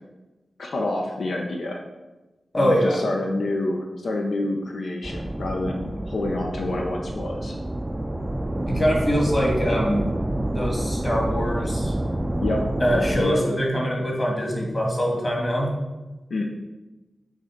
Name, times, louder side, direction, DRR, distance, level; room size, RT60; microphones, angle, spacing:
voice 1, 0.6-1.8 2.6-7.5 12.4-12.6 12.9-13.4 16.3-16.4, left 2 dB, 85° left, 0 dB, 0.7 m, -27 dB
voice 2, 2.5-3.0 8.7-10.1 10.5-11.9 12.8-15.7, equal, 30° left, -2 dB, 1.7 m, -23 dB
sound 1, 5.0-13.2, right 1 dB, 15° right, 0.4 m, -28 dB
6.5 x 3.2 x 5.0 m, 1.1 s
wide cardioid pair, 105°, 0 cm